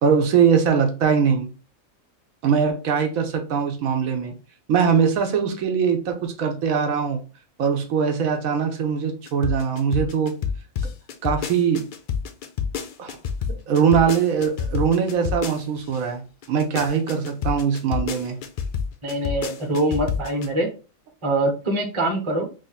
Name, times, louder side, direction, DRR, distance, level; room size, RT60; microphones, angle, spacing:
voice 1, 0.0-1.5 2.4-4.4 4.7-7.2 7.6-10.3 11.2-11.9 13.0-13.2 13.7-16.2 16.5-18.4, right 7 dB, 80° right, 1.1 m, -21 dB
sound 1, 9.3-16.0 16.4-20.5, left 6 dB, 75° left, 0.4 m, -28 dB
voice 2, 19.0-20.7 21.2-22.5, right 1 dB, 25° right, 1.0 m, -23 dB
3.1 x 2.6 x 4.0 m
omnidirectional pair, 1.4 m